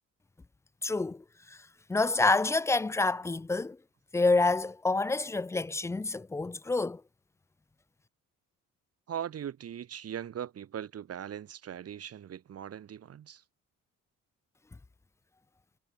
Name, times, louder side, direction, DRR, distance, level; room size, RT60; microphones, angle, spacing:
voice 1, 0.8-1.2 1.9-3.8 4.1-7.0, left 3 dB, 10° left, 0.3 m, -27 dB
voice 2, 9.1-13.4, right 9 dB, 55° right, 1.4 m, -40 dB
cardioid pair, 90°, 30 cm